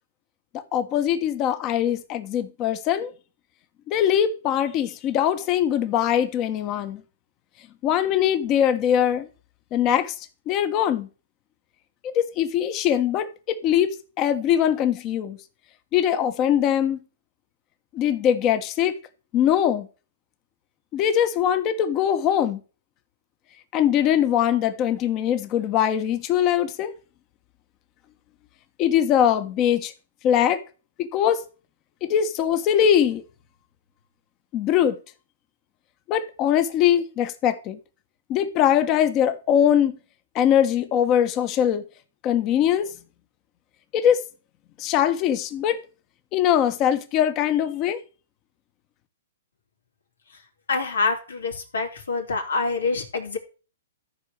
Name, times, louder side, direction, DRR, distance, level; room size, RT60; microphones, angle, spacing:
voice 1, 0.7-3.1 3.9-7.0 7.8-9.3 9.7-10.1 10.5-11.1 12.0-15.4 15.9-17.0 17.9-18.9 19.3-19.9 20.9-22.6 23.7-26.9 28.8-29.9 30.2-30.6 31.0-31.4 32.0-33.2 34.5-35.0 36.1-37.8 38.3-40.0 40.3-41.8 42.2-42.9 43.9-44.2 44.8-45.8 46.3-48.0, left 10 dB, 30° left, 1.4 m, -22 dB
voice 2, 50.7-53.4, left 4 dB, 90° left, 3.7 m, -26 dB
14.0 x 4.8 x 6.8 m
hypercardioid pair, 140°, 0 cm